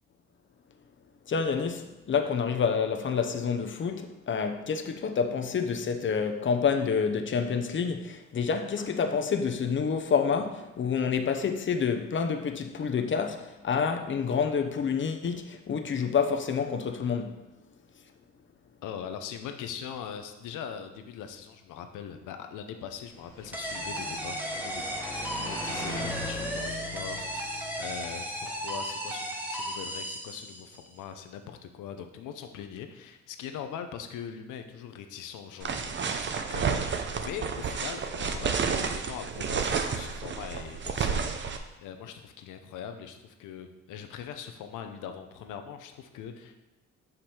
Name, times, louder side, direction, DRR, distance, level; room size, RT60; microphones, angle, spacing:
voice 1, 1.3-17.3, left 6 dB, 40° left, 0.7 m, -28 dB
voice 2, 18.8-25.0 25.3-46.6, left 8 dB, 85° left, 0.7 m, -41 dB
sound 1, 23.2-29.3, left 1 dB, 10° left, 1.6 m, -41 dB
sound 2, 23.5-30.9, equal, 5° right, 1.1 m, -35 dB
sound 3, 35.6-41.6, right 6 dB, 40° right, 0.6 m, -30 dB
6.0 x 5.1 x 4.4 m
cardioid pair, 90°, 30 cm